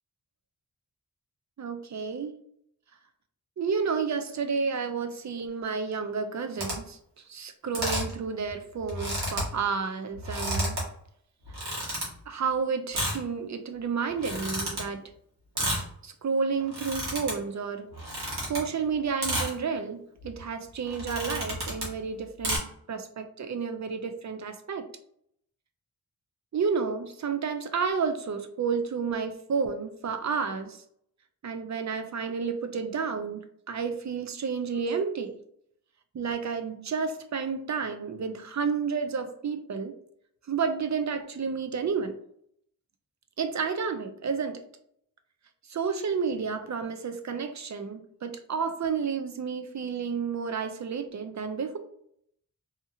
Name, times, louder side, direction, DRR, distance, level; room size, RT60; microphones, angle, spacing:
voice 1, 1.6-2.3 3.6-7.0 7.3-10.8 12.3-15.0 16.0-17.9 18.5-20.0 20.2-24.9 26.5-30.8 31.4-35.4 36.1-40.0 40.5-42.2 43.4-44.6 45.7-51.8, right 5 dB, 50° right, 8 dB, 0.4 m, -31 dB
sound 1, 6.6-6.7 7.7-8.2 8.5-8.6 8.8-9.5 10.1-10.8 11.5-12.0 12.9-13.2 14.1-14.8 15.6-15.9 16.6-17.3 17.9-18.6 19.2-19.5 20.2-20.4 20.9-21.9 22.4-22.6, right 1 dB, 80° right, 1.4 m, -31 dB
2.8 x 2.5 x 2.5 m, 0.68 s
cardioid pair, 55°, 38 cm